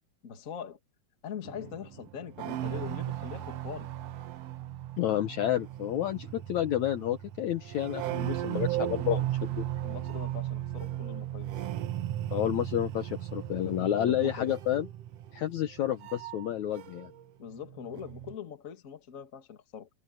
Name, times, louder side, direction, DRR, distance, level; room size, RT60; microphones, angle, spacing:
voice 1, 0.2-0.8 1.2-3.9 9.8-11.5 13.8-14.5 17.4-19.9, left 8 dB, 30° left, 1.6 m, -42 dB
sound 1, 1.4-17.2 17.5-18.3, right 13 dB, 90° right, 1.3 m, -36 dB
voice 2, 5.0-9.6 12.3-14.9 15.3-17.1, left 11 dB, 65° left, 2.0 m, -30 dB
omnidirectional pair, 4.2 m